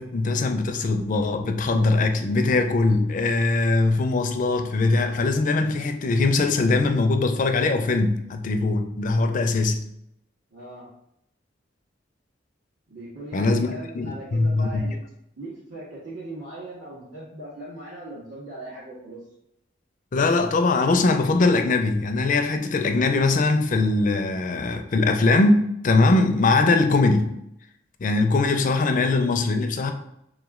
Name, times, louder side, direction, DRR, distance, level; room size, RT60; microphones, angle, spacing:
voice 1, 0.0-9.8 13.3-14.9 20.1-27.3 28.0-29.9, left 3 dB, 45° left, 0.4 m, -21 dB
voice 2, 10.5-10.9 12.9-15.0 15.4-19.2, right 2 dB, 80° right, 1.5 m, -39 dB
3.6 x 3.0 x 3.6 m
head